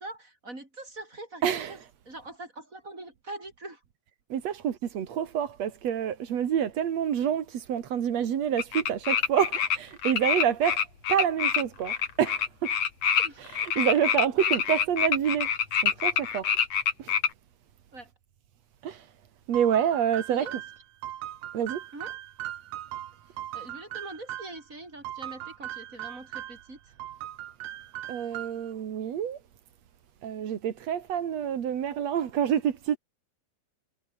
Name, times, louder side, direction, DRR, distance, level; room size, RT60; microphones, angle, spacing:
voice 1, 0.0-3.8 13.2-13.5 14.4-14.5 17.9-18.1 20.3-20.6 21.9-22.1 23.3-26.9, right 2 dB, 20° right, 7.7 m, -43 dB
voice 2, 1.4-1.8 4.3-10.8 11.1-12.7 13.4-15.5 15.8-16.5 17.0-17.1 18.8-19.1 19.5-20.5 21.5-21.8 28.1-29.4 30.2-33.0, right 9 dB, 50° right, 2.5 m, -27 dB
sound 1, 8.6-9.8 10.0-17.3, left 7 dB, 45° left, 2.8 m, -26 dB
sound 2, 19.5-24.6 25.0-26.7 27.0-28.7, right 13 dB, 85° right, 3.7 m, -39 dB
omnidirectional pair, 4.6 m